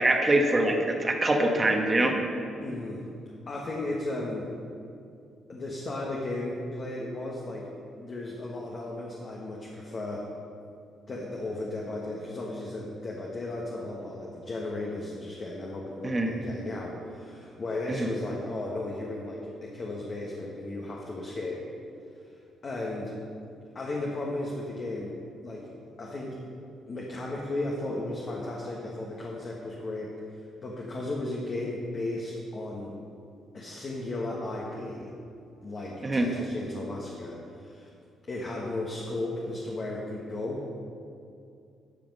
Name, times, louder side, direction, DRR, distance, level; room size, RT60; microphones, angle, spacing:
voice 1, 0.0-2.2 16.0-16.3 17.9-18.1 36.0-36.3, right 1 dB, 25° right, 3 dB, 1.2 m, -24 dB
voice 2, 2.6-3.0 3.5-4.5 5.5-7.7 8.0-10.3 11.1-21.7 22.2-23.1 23.7-25.2 25.4-25.7 26.0-26.4 26.9-33.0 33.5-35.1 35.6-37.9 38.3-40.7, left 2 dB, 40° left, -3 dB, 1.4 m, -35 dB
12.0 x 6.0 x 5.5 m, 2.5 s
cardioid pair, 90°, 0 cm